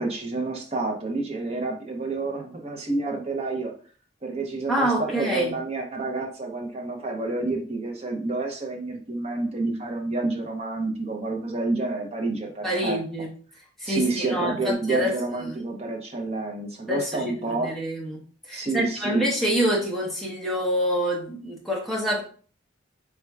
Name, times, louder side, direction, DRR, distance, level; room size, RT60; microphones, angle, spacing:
voice 1, 0.0-3.7 4.2-13.0 13.8-17.7 18.5-19.2, right 3 dB, 30° right, 1 dB, 0.7 m, -29 dB
voice 2, 4.7-5.5 12.6-13.3 13.8-15.1 15.5-15.6 16.9-22.2, equal, ahead, -3 dB, 0.9 m, -26 dB
4.4 x 3.7 x 2.3 m, 0.42 s
head